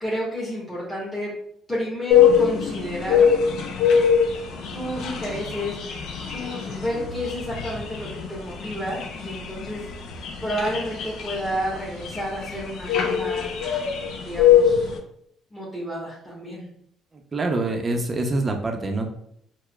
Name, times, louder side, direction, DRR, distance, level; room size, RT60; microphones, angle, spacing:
voice 1, 0.0-1.3 1.7-3.5 4.7-6.0 6.3-9.9 10.4-13.5 14.2-15.0 15.5-16.7, equal, 5° left, -7 dB, 1.1 m, -31 dB
sound 1, 2.1-15.0, left 8 dB, 70° left, 0.4 m, -22 dB
voice 2, 17.3-19.1, right 2 dB, 35° right, 3 dB, 0.5 m, -25 dB
4.4 x 2.0 x 2.3 m, 0.70 s
supercardioid pair, 80°, 0 cm